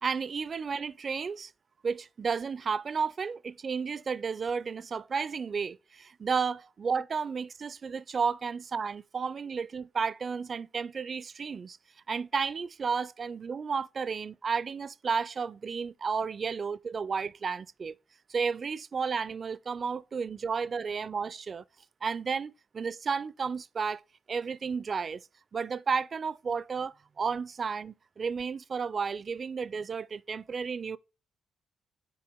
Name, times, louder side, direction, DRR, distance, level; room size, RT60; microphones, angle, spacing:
voice 1, 0.0-1.5 1.8-11.8 12.1-17.9 18.3-21.6 22.0-24.0 24.3-25.2 25.5-31.0, right 5 dB, 40° right, 0.4 m, -32 dB
8.6 x 4.7 x 3.5 m
cardioid pair, 90°, 0 cm